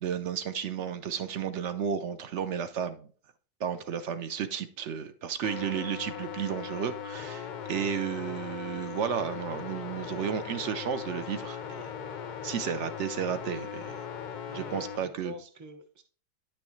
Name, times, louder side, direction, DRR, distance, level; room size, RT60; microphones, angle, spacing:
voice 1, 0.0-3.1 3.6-11.9 12.4-14.0 14.5-15.3, right 8 dB, 65° right, 10 dB, 0.9 m, -33 dB
sound 1, 5.4-15.0, left 8 dB, 60° left, 0.5 m, -39 dB
voice 2, 14.4-16.0, left 1 dB, 20° right, 7 dB, 0.6 m, -46 dB
9.7 x 6.3 x 3.1 m, 0.42 s
omnidirectional pair, 1.4 m